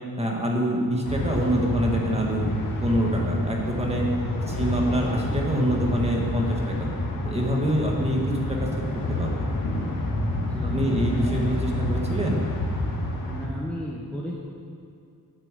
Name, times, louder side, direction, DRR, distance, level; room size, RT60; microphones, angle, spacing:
voice 1, 0.2-2.5 2.8-4.1 4.5-6.9 7.2-8.7 8.9-9.6 10.6-12.4, equal, 15° right, -1 dB, 1.7 m, -26 dB
sound 1, 1.0-13.5, left 1 dB, 65° left, 2.0 m, -28 dB
voice 2, 10.3-11.1 13.2-14.3, equal, 5° left, -5 dB, 1.1 m, -34 dB
9.9 x 8.8 x 8.3 m, 2.4 s
wide cardioid pair, 175°, 36 cm